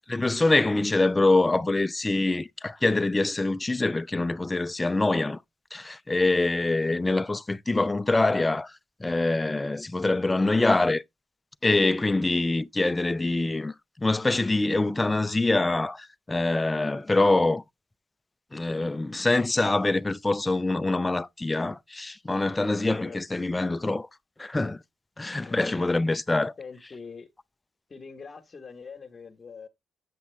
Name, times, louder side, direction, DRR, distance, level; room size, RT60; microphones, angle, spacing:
voice 1, 0.1-5.4 5.7-8.7 9.0-11.0 11.6-17.6 18.5-24.1 24.4-24.8 25.2-26.5, left 2 dB, 15° left, 0.5 m, -25 dB
voice 2, 26.6-27.3 27.9-29.7, left 5 dB, 40° left, 1.3 m, -43 dB
8.4 x 5.8 x 3.3 m
cardioid pair, 90°, 0 cm